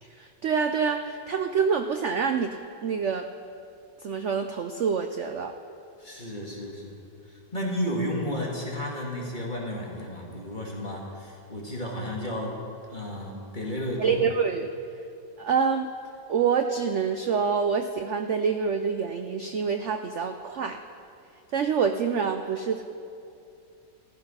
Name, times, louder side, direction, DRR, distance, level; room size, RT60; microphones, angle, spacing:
voice 1, 0.0-3.3 4.0-5.5 14.0-14.7 15.4-15.9 16.3-20.8 21.5-22.8, right 6 dB, 85° right, 7 dB, 0.6 m, -26 dB
voice 2, 6.0-7.0 7.3-12.6 12.9-14.2, equal, 25° left, -3 dB, 2.1 m, -33 dB
15.0 x 12.5 x 5.6 m, 2.5 s
omnidirectional pair, 2.0 m